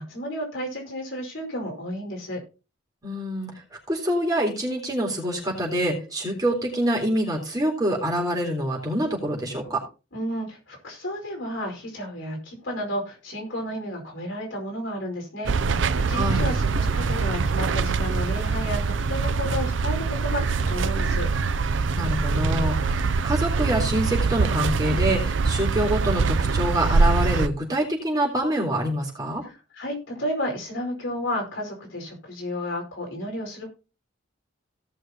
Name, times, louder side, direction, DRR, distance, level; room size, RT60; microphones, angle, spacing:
voice 1, 0.0-2.4 10.1-15.5 15.9-21.3 29.4-33.7, equal, 75° left, 0 dB, 4.8 m, -32 dB
voice 2, 3.0-3.5 3.9-9.8 16.1-16.5 21.9-29.4, right 1 dB, 20° right, -2 dB, 3.8 m, -26 dB
sound 1, 15.5-27.5, right 4 dB, 65° right, 0.5 m, -23 dB
17.5 x 6.4 x 2.9 m, 0.31 s
head